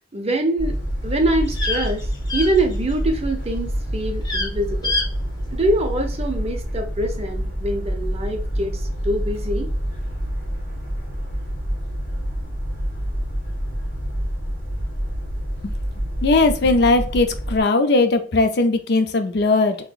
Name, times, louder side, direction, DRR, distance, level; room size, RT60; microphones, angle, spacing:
voice 1, 0.1-4.9 5.5-9.7, right 1 dB, 35° right, 0.7 m, -24 dB
sound 1, 0.6-17.6, equal, 45° left, 1.7 m, -27 dB
sound 2, 0.8-3.2 3.4-3.8 4.1-4.5 4.8-5.1 5.4-5.5, left 3 dB, 20° left, 0.7 m, -27 dB
voice 2, 16.2-19.8, left 3 dB, 60° left, 0.5 m, -18 dB
3.8 x 3.0 x 2.4 m
head